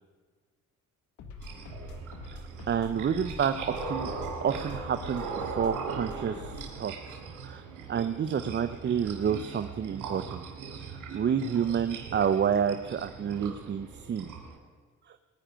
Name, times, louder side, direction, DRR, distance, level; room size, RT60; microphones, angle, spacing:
sound 1, 1.2-6.8, left 4 dB, 70° left, 1.7 m, -45 dB
sound 2, 1.4-14.6, right 5 dB, 85° right, 2.4 m, -39 dB
voice 1, 2.3-4.1 4.4-7.2 7.4-10.4 10.9-14.3 15.1-15.2, right 7 dB, 40° right, 10 dB, 0.6 m, -29 dB
19.5 x 10.0 x 5.1 m, 1.5 s
cardioid pair, 90°, 30 cm